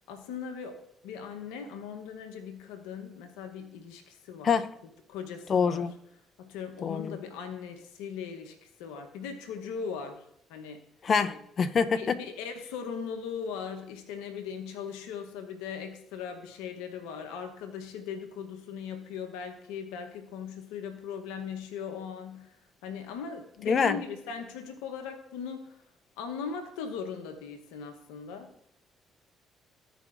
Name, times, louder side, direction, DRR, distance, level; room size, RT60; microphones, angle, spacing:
voice 1, 0.1-4.6 5.1-5.8 6.4-10.2 10.5-10.8 11.9-22.6 22.8-25.7 26.2-28.5, left 6 dB, 80° left, 0.9 m, -39 dB
voice 2, 5.5-5.9 6.8-7.2 11.0-12.2 23.6-24.0, left 6 dB, 50° left, 0.6 m, -26 dB
15.0 x 5.1 x 2.5 m
hypercardioid pair, 50°, 0 cm